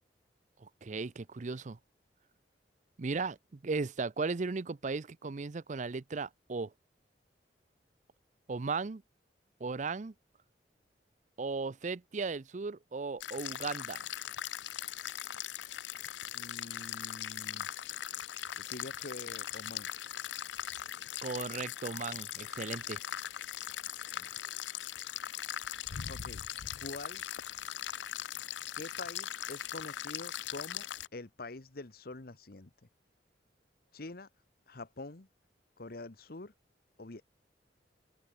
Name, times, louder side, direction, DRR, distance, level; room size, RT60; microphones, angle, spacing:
voice 1, 0.6-1.8 3.0-6.7 8.5-9.0 9.6-10.1 11.4-14.0 21.2-23.0, right 4 dB, 45° right, 0.5 m, -36 dB
sound 1, 13.2-31.1, left 11 dB, 90° left, 0.6 m, -40 dB
voice 2, 16.3-17.7 18.6-19.9 24.0-24.4 26.1-26.4 26.8-27.2 28.7-30.9 31.1-32.7 33.9-34.3 34.7-35.3 35.8-36.5 37.0-37.2, left 2 dB, 60° left, 1.2 m, -46 dB
open air
head